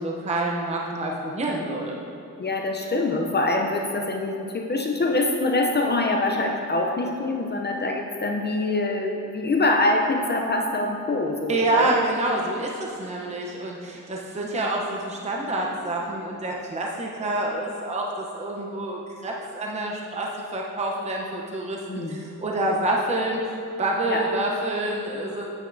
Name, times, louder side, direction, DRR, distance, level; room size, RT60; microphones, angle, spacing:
voice 1, 0.0-1.9 11.5-21.8 22.1-25.5, right 2 dB, 20° right, -2 dB, 0.8 m, -27 dB
voice 2, 2.4-11.9 21.9-22.2 24.1-24.3, left 2 dB, 30° left, 1 dB, 0.6 m, -24 dB
9.5 x 8.0 x 2.7 m, 2.7 s
cardioid pair, 115°, 33 cm